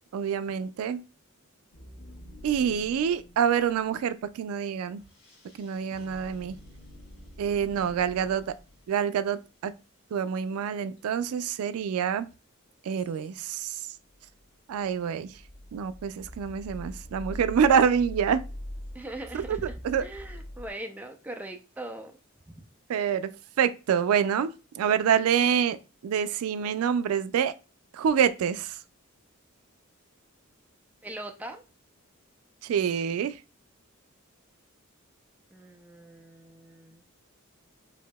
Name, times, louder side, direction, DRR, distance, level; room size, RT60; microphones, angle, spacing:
voice 1, 0.1-1.0 2.4-5.0 5.6-6.6 7.4-8.4 8.9-9.7 10.1-12.3 12.9-13.8 14.7-15.3 15.7-18.4 19.3-19.6 19.8-20.0 22.9-23.3 23.6-25.8 26.0-27.5 27.9-28.8 32.6-33.4, right 7 dB, 90° right, 0.3 m, -26 dB
sound 1, 1.7-3.9 4.9-9.3 11.0-11.1 11.7-11.8 12.9-13.4 14.1-20.7, left 1 dB, 90° left, 1.2 m, -44 dB
voice 2, 18.9-22.2 22.5-22.6 31.0-31.6 35.5-37.0, right 1 dB, 5° right, 0.4 m, -41 dB
4.7 x 2.7 x 2.2 m
head